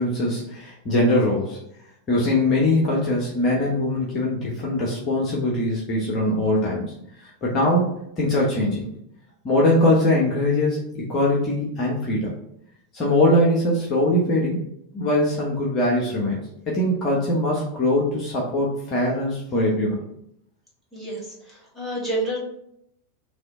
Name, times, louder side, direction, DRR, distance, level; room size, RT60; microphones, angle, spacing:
voice 1, 0.0-1.6 2.1-6.9 7.2-8.9 9.4-12.3 12.9-14.6 14.9-16.4 16.7-20.0, left 1 dB, 30° left, -4 dB, 1.1 m, -22 dB
voice 2, 20.9-22.4, right 1 dB, ahead, -7 dB, 1.6 m, -29 dB
4.0 x 2.9 x 3.6 m, 0.75 s
figure-of-eight pair, 90°, 0 cm